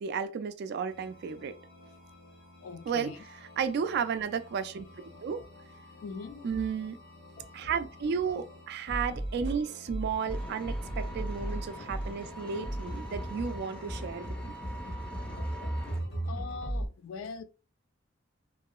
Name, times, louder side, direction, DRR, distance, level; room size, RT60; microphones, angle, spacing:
voice 1, 0.0-1.6 2.9-5.4 6.4-7.0 7.5-14.3, right 6 dB, 55° right, 0.3 m, -33 dB
sound 1, 0.9-16.9, right 1 dB, 55° left, 1.3 m, -39 dB
voice 2, 2.6-3.2 6.0-6.5 16.3-17.4, left 5 dB, 80° left, 0.4 m, -41 dB
Vehicle, 10.3-16.0, equal, 5° left, 0.6 m, -44 dB
3.0 x 2.7 x 2.3 m
head